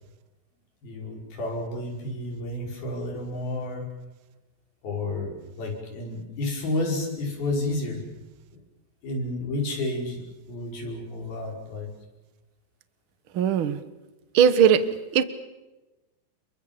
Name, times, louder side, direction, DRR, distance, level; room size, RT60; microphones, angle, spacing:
voice 1, 0.8-3.9 4.8-8.0 9.0-11.9, left 2 dB, 85° left, 1 dB, 7.4 m, -31 dB
voice 2, 13.3-13.8 14.3-14.8 15.1-15.2, right 8 dB, 55° right, 12 dB, 1.4 m, -18 dB
28.0 x 23.0 x 7.2 m, 1.1 s
omnidirectional pair, 4.1 m